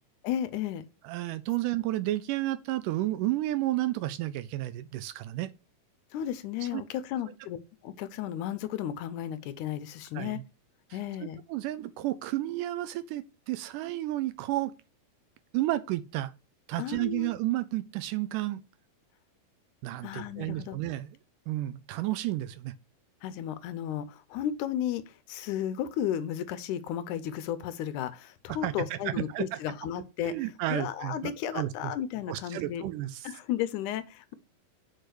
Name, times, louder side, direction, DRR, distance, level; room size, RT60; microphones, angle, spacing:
voice 1, 0.2-0.8 6.1-10.4 10.9-11.4 16.8-17.3 20.0-20.8 23.2-30.3 30.7-32.8 33.2-34.3, left 10 dB, 85° left, 1.8 m, -34 dB
voice 2, 1.0-5.5 6.7-6.8 10.2-10.4 11.5-14.7 15.5-16.3 16.7-18.6 19.8-21.1 21.5-22.7 28.6-29.6 30.2-31.9 32.3-33.3, right 15 dB, 80° right, 1.9 m, -31 dB
6.6 x 4.8 x 6.2 m
omnidirectional pair, 4.2 m